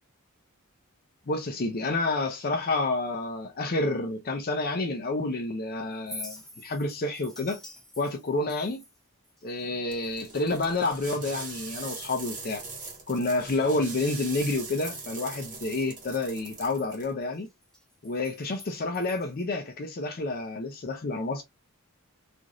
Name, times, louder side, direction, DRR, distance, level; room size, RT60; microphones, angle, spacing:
voice 1, 1.3-7.6 8.0-8.8 9.4-12.6 13.1-17.5 18.0-21.4, left 2 dB, 45° left, 0.5 m, -29 dB
Chink clink, 5.9-11.6 11.9-12.5 12.9-13.0 13.5-15.8 16.1-19.6, left 1 dB, ahead, 1.0 m, -49 dB
sound 1, 9.9-17.1, right 4 dB, 35° right, 1.3 m, -41 dB
2.9 x 2.5 x 2.4 m
head